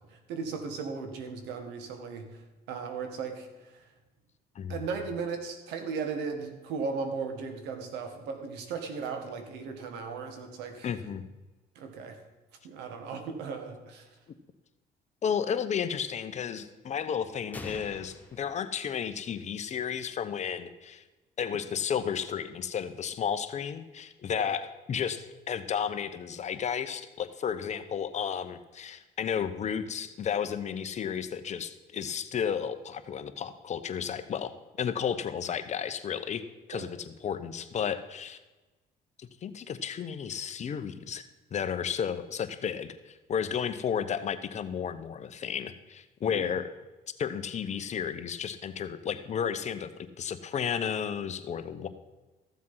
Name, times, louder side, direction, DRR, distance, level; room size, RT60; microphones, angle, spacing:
voice 1, 0.1-3.8 4.7-10.9 11.8-12.2 12.6-14.1 24.3-24.5 36.7-36.9 46.3-46.5, right 5 dB, 90° right, 6 dB, 1.9 m, -37 dB
voice 2, 10.8-11.2 15.2-21.0 21.4-36.4 36.7-38.4 39.2-41.2 41.5-46.7 47.2-51.9, left 7 dB, 45° left, 10 dB, 1.0 m, -33 dB
sound 1, 17.5-19.4, left 2 dB, 10° left, 1.2 m, -46 dB
14.0 x 7.4 x 5.7 m, 1.1 s
cardioid pair, 110°, 17 cm